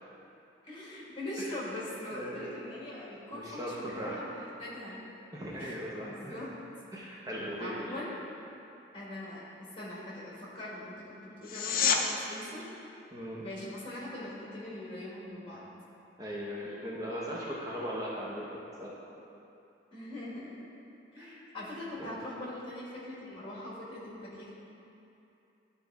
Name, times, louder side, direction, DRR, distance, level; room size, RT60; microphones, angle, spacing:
voice 1, 0.6-5.0 5.5-5.7 6.0-6.5 7.6-8.1 8.9-9.4 9.8-12.7 13.4-15.7 19.9-20.7 21.1-24.5, left 1 dB, 30° left, -6 dB, 1.7 m, -42 dB
voice 2, 2.1-2.4 3.3-4.2 5.3-6.4 6.9-8.0 13.1-13.4 16.2-18.9 21.2-21.5 22.0-22.1, equal, 20° right, -6 dB, 0.6 m, -38 dB
sound 1, 11.4-12.0 23.4-23.5, left 7 dB, 45° left, 0.5 m, -27 dB
12.0 x 4.1 x 3.5 m, 2.8 s
head